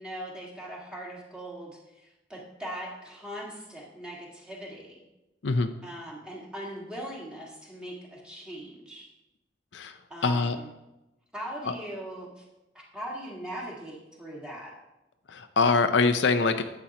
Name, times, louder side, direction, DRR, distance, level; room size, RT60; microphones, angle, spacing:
voice 1, 0.0-5.0 5.8-9.1 10.1-10.7 11.3-12.4 12.9-14.7, right 1 dB, 5° right, -4 dB, 1.8 m, -40 dB
voice 2, 10.2-10.6 11.6-11.7 15.3-16.6, left 4 dB, 85° left, 8 dB, 0.6 m, -24 dB
11.5 x 7.7 x 3.0 m, 0.97 s
head